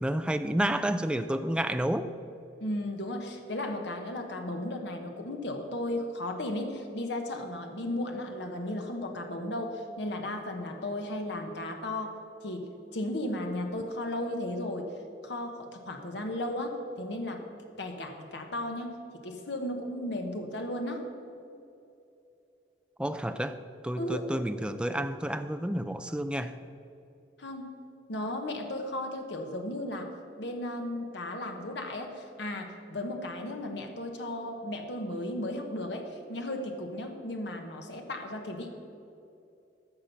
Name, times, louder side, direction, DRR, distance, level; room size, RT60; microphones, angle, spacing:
voice 1, 0.0-2.1 23.0-23.6 23.8-26.5, right 1 dB, 5° right, 9 dB, 0.4 m, -30 dB
voice 2, 2.6-12.2 12.4-14.9 15.2-17.4 17.8-19.0 19.2-21.1 24.0-24.3 27.4-27.8 28.1-30.1 30.4-38.7, left 1 dB, 75° left, 4 dB, 1.1 m, -35 dB
14.5 x 5.8 x 5.7 m, 2.7 s
head